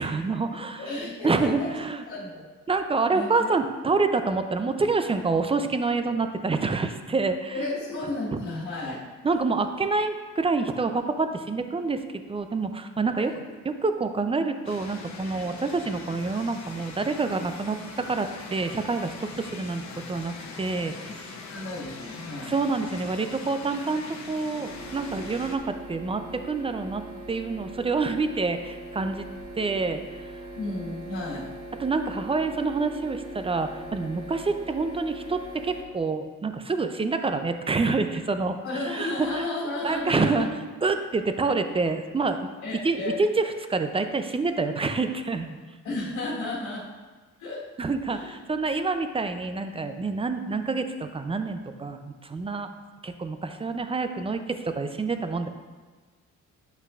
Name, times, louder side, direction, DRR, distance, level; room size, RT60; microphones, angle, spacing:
voice 1, 0.0-0.9 1.2-2.0 2.7-7.7 8.3-8.4 9.2-12.0 12.3-13.3 13.8-21.3 22.5-29.3 29.6-30.5 31.8-38.6 38.9-39.4 39.8-40.5 40.8-42.4 42.8-45.6 47.8-52.7 53.0-55.5, right 3 dB, 20° right, 8 dB, 0.4 m, -27 dB
voice 2, 0.8-1.7 2.1-2.4 3.1-3.5 7.5-9.1 13.2-13.4 21.5-22.5 30.6-31.5 38.6-40.5 41.7-41.8 42.6-43.2 45.8-46.9 47.4-47.6 48.1-48.3, left 2 dB, 80° left, -6 dB, 1.6 m, -33 dB
sound 1, 14.6-25.6, left 4 dB, 65° left, 0.9 m, -41 dB
sound 2, 24.7-35.8, right 2 dB, 50° right, 1.0 m, -41 dB
7.9 x 5.6 x 2.4 m, 1.4 s
cardioid pair, 90°, 30 cm